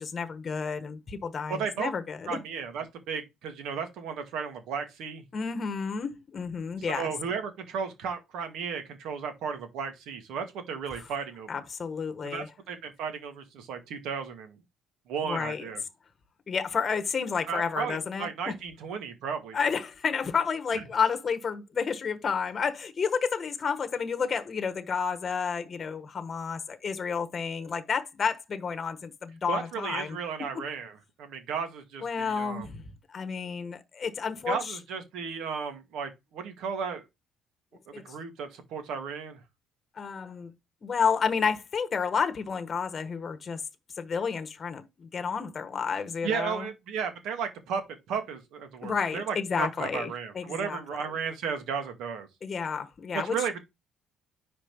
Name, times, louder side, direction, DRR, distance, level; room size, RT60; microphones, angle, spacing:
voice 1, 0.0-2.4 5.3-7.1 11.5-12.5 15.2-15.6 16.5-18.5 19.5-30.2 32.0-34.8 37.9-38.0 40.0-40.5 40.8-43.6 44.0-46.7 48.8-51.0 52.4-53.4, left 6 dB, 30° left, 1.1 m, -31 dB
voice 2, 1.5-1.9 2.3-5.2 6.8-11.6 12.2-14.6 15.1-15.8 17.5-19.6 20.7-20.8 29.5-32.7 34.5-37.0 38.0-39.4 46.2-47.8 48.1-52.3 53.1-53.6, right 6 dB, 75° right, 2.0 m, -34 dB
5.1 x 4.3 x 5.9 m
cardioid pair, 125°, 0 cm